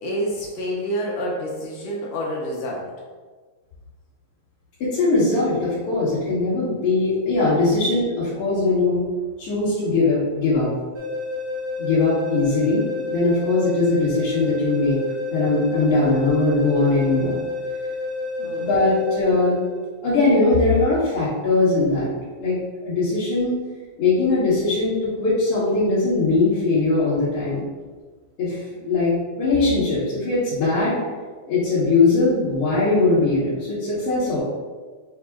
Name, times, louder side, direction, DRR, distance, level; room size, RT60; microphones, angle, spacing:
voice 1, 0.0-2.9 18.4-18.9, equal, 80° left, -3 dB, 1.7 m, -28 dB
voice 2, 4.8-9.0 9.4-10.7 11.8-15.0 15.3-17.4 18.5-19.6 20.0-22.1 22.4-22.6 22.8-23.6 24.0-27.6 28.4-31.0 31.5-34.4, left 3 dB, 60° left, -12 dB, 1.8 m, -20 dB
sound 1, 10.9-19.9, left 2 dB, 60° right, 1.1 m, -29 dB
6.0 x 2.1 x 3.4 m, 1.5 s
omnidirectional pair, 3.4 m